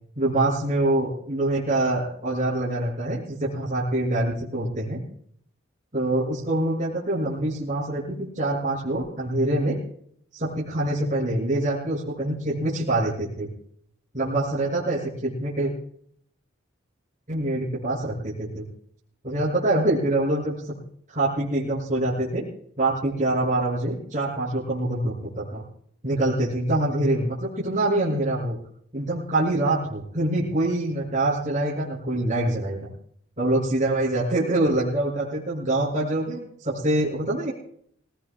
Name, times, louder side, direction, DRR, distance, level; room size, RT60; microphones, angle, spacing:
voice 1, 0.2-5.0 5.9-9.8 10.3-13.5 14.1-15.7 17.3-18.6 19.2-20.5 21.1-22.4 22.8-25.6 26.0-28.6 28.9-32.9 33.4-37.5, right 1 dB, 40° right, -7 dB, 7.1 m, -25 dB
27.5 x 18.0 x 2.4 m, 0.66 s
head